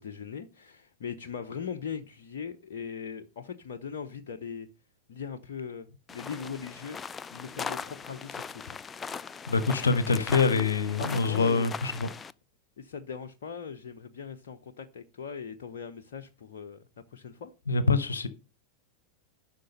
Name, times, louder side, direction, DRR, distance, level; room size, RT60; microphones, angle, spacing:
voice 1, 0.0-4.7 5.1-7.0 7.3-8.8 10.1-10.7 11.0-11.7 12.8-16.8 17.1-17.5, left 6 dB, 60° left, 0.8 m, -40 dB
sound 1, 6.1-12.3, left 5 dB, 20° left, 0.4 m, -39 dB
voice 2, 9.5-12.1 17.7-18.3, left 4 dB, 75° left, 1.0 m, -25 dB
11.5 x 6.0 x 5.4 m
figure-of-eight pair, 90°, 0 cm